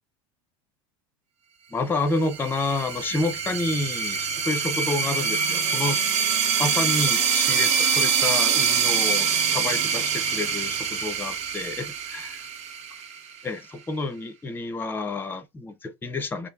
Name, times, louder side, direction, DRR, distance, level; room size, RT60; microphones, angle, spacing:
voice 1, 1.7-6.0 6.6-12.3 13.4-16.5, left 2 dB, 15° left, 0.5 m, -29 dB
sound 1, 2.2-13.4, right 6 dB, 45° right, 0.9 m, -25 dB
3.2 x 2.4 x 3.5 m
supercardioid pair, 110°, 16 cm